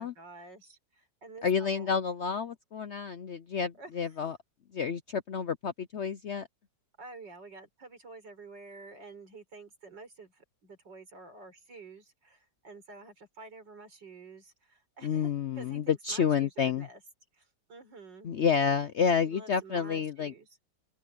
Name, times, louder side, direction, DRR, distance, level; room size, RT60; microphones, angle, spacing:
voice 1, 0.0-2.0 3.8-4.3 7.0-17.0 17.3-18.5 19.1-20.5, right 3 dB, 80° right, 5.3 m, -50 dB
voice 2, 1.4-4.4 4.7-6.5 15.0-16.9 18.2-20.3, left 6 dB, 65° left, 0.7 m, -29 dB
open air
omnidirectional pair, 1.9 m